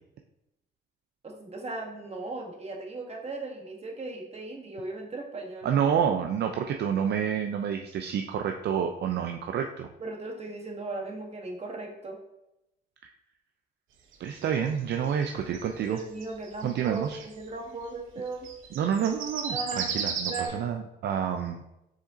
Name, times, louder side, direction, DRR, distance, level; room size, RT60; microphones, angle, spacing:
voice 1, 1.2-5.7 10.0-12.2 15.9-18.5 19.5-20.7, right 3 dB, 30° right, 1 dB, 1.1 m, -37 dB
voice 2, 5.6-9.9 14.2-16.0 16.6-17.2 18.8-21.6, right 8 dB, 60° right, 4 dB, 0.4 m, -28 dB
sound 1, 14.1-17.4 18.3-20.5, right 6 dB, 80° right, 0.7 m, -35 dB
4.8 x 4.2 x 2.6 m, 0.88 s
cardioid pair, 90°, 20 cm